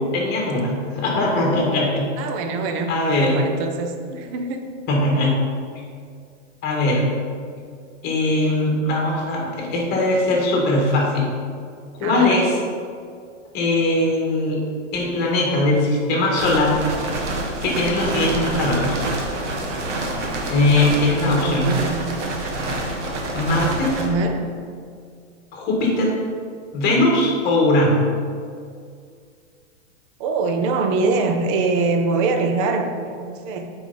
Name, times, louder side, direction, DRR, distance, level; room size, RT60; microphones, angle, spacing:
voice 1, 0.1-2.1 2.9-3.3 4.9-5.3 6.6-7.1 8.0-11.3 12.0-12.5 13.5-14.6 14.9-16.8 17.6-19.0 20.5-21.7 23.3-23.9 25.5-26.1 26.7-28.0, left 2 dB, 25° left, -2 dB, 1.8 m, -20 dB
voice 2, 2.2-4.7 5.2-5.4 12.0-12.5 21.2-22.5 24.0-24.5 30.2-33.7, right 3 dB, 25° right, 5 dB, 0.5 m, -24 dB
sound 1, 16.4-24.1, right 2 dB, 70° right, 1.5 m, -27 dB
8.9 x 4.9 x 4.2 m, 2.2 s
hypercardioid pair, 155°, 37 cm